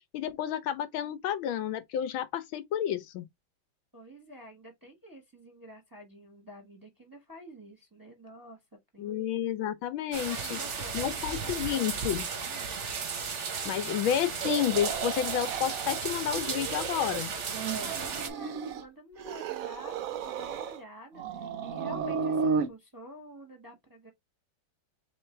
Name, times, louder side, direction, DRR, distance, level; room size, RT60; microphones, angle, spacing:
voice 1, 0.1-3.2 9.0-10.6 10.9-12.3 13.6-17.3, left 10 dB, 80° left, 1.4 m, -30 dB
voice 2, 3.9-9.1 10.3-11.5 12.3-12.9 17.8-24.1, equal, 10° right, 1.2 m, -49 dB
sound 1, 10.1-18.3, right 5 dB, 50° right, 0.9 m, -35 dB
sound 2, 14.4-16.0 16.3-17.2 17.5-18.8 19.2-20.8 21.1-22.7, right 6 dB, 75° right, 0.7 m, -33 dB
3.8 x 3.1 x 4.4 m
omnidirectional pair, 2.3 m